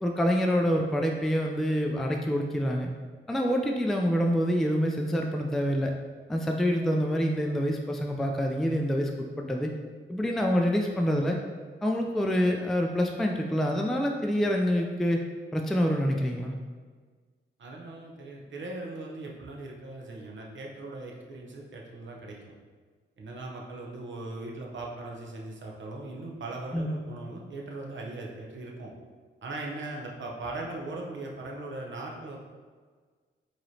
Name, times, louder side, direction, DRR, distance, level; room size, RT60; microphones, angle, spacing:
voice 1, 0.0-2.9 3.3-5.9 6.3-9.7 10.1-11.4 11.8-15.2 15.5-16.5 26.7-27.0, equal, ahead, 2 dB, 0.3 m, -26 dB
voice 2, 17.6-22.5 23.2-28.9 29.4-32.4, right 2 dB, 65° right, -1 dB, 0.8 m, -39 dB
4.7 x 3.0 x 2.7 m, 1.5 s
cardioid pair, 60°, 21 cm